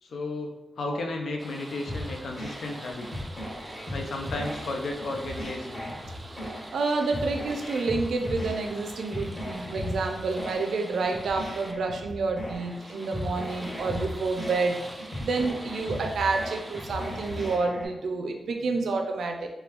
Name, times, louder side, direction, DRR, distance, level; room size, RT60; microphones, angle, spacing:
voice 1, 0.0-3.1 3.9-5.8, left 2 dB, 75° left, 2 dB, 0.4 m, -33 dB
sound 1, 1.4-17.6, right 1 dB, 20° right, 0.3 m, -45 dB
sound 2, 1.9-17.9, left 1 dB, 25° left, 1.5 m, -37 dB
voice 2, 6.4-19.5, right 3 dB, 90° right, 4 dB, 0.4 m, -29 dB
3.3 x 2.3 x 2.9 m, 0.95 s
wide cardioid pair, 120°, 0 cm